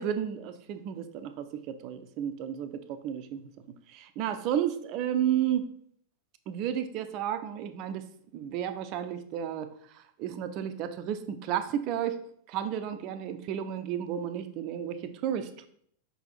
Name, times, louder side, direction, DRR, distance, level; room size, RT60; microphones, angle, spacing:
voice 1, 0.0-3.4 3.9-5.7 6.5-8.0 8.3-12.2 12.5-15.7, right 9 dB, 40° right, 9 dB, 0.5 m, -32 dB
5.4 x 4.3 x 4.2 m, 0.65 s
figure-of-eight pair, 90°, 0 cm